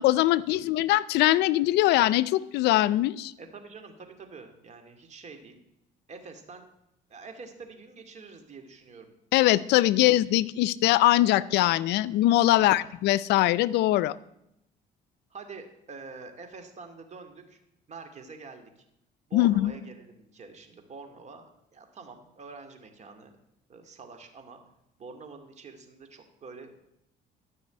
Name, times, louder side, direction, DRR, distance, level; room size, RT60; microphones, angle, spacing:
voice 1, 0.0-3.3 9.3-14.2 19.3-19.7, left 16 dB, 80° left, 20 dB, 0.5 m, -22 dB
voice 2, 3.4-5.6 6.1-6.7 7.1-9.1 12.6-12.9 15.3-17.6 17.9-18.7 19.3-21.4 21.7-23.4 23.7-24.6 25.0-26.8, right 4 dB, 45° right, 6 dB, 2.3 m, -46 dB
13.5 x 6.1 x 9.2 m, 0.81 s
cardioid pair, 110°, 17 cm